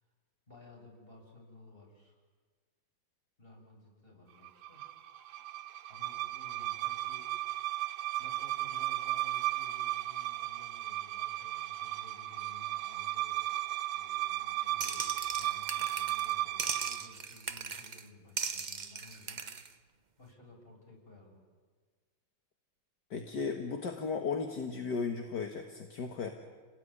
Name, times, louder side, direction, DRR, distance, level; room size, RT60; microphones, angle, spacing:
voice 1, 0.5-2.2 3.4-4.8 5.9-7.3 7.7-7.9 8.2-13.5 13.9-19.5 19.8-19.9 20.2-21.4, left 2 dB, 30° left, -1 dB, 7.2 m, -56 dB
sound 1, 4.4-17.1, right 15 dB, 75° right, 1.7 m, -35 dB
sound 2, 14.8-16.3 16.6-18.0 18.4-19.7, right 5 dB, 45° right, 0.6 m, -38 dB
voice 2, 23.1-26.3, left 5 dB, 60° left, 4 dB, 2.1 m, -35 dB
28.5 x 18.5 x 9.9 m, 1.5 s
omnidirectional pair, 2.1 m